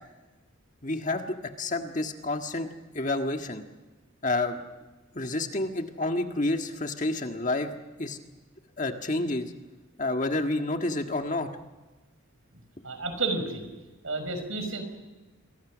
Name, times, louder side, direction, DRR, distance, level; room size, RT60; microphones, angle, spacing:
voice 1, 0.8-1.2 1.6-2.7 2.9-3.6 4.2-4.6 5.1-7.7 8.0-8.2 8.8-9.5 10.0-11.5, left 2 dB, 35° left, 5 dB, 1.7 m, -29 dB
voice 2, 12.8-13.6 14.0-14.8, right 3 dB, 70° right, 7 dB, 5.6 m, -31 dB
28.5 x 23.0 x 6.3 m, 1.2 s
head